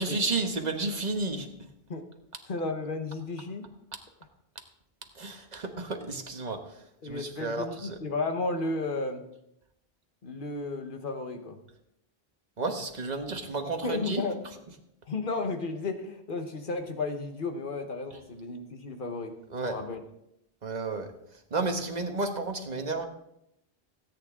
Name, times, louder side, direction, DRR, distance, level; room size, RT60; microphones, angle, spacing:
voice 1, 0.0-1.5 5.1-8.0 12.6-14.2 18.1-18.2 19.5-19.8 20.6-23.1, right 3 dB, 45° right, 5 dB, 1.3 m, -32 dB
voice 2, 2.5-3.6 7.0-9.2 10.2-11.6 13.8-14.4 15.1-19.4 19.7-20.0, left 3 dB, 55° left, 6 dB, 1.4 m, -33 dB
17.0 x 8.9 x 3.7 m, 0.80 s
omnidirectional pair, 1.0 m